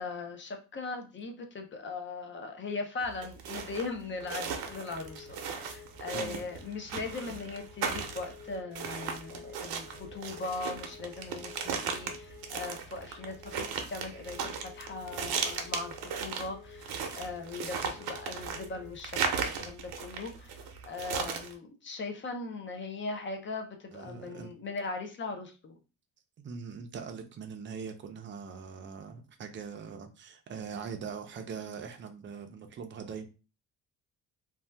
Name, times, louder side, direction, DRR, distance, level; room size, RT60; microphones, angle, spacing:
voice 1, 0.0-25.8, left 3 dB, 35° left, 5 dB, 0.5 m, -39 dB
sound 1, 3.0-21.5, right 6 dB, 85° right, 0.7 m, -36 dB
sound 2, 4.2-18.9, left 5 dB, 75° left, 1.5 m, -52 dB
voice 2, 23.9-24.5 26.4-33.3, right 6 dB, 35° right, 6 dB, 0.5 m, -42 dB
2.7 x 2.2 x 3.3 m, 0.32 s
cardioid pair, 150°, 36 cm